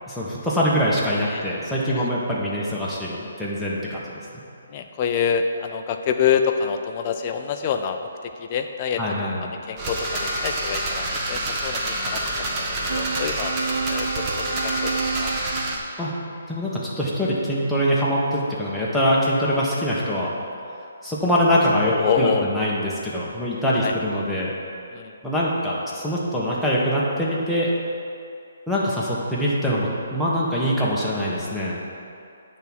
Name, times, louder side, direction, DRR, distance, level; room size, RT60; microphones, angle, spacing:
voice 1, 0.1-4.2 9.0-9.5 16.0-16.1 16.5-20.3 21.0-24.5 25.2-27.7 28.7-31.8, equal, 5° left, -7 dB, 1.2 m, -23 dB
voice 2, 4.7-9.0 9.4-13.5 13.8-15.3 21.8-22.5 23.8-23.9 24.9-25.2, left 7 dB, 35° left, 6 dB, 0.5 m, -27 dB
sound 1, 9.8-15.8, right 1 dB, 25° right, 1.0 m, -27 dB
sound 2, 12.9-15.8, right 5 dB, 85° right, 0.3 m, -30 dB
9.1 x 3.6 x 6.1 m, 2.5 s
hypercardioid pair, 155°, 0 cm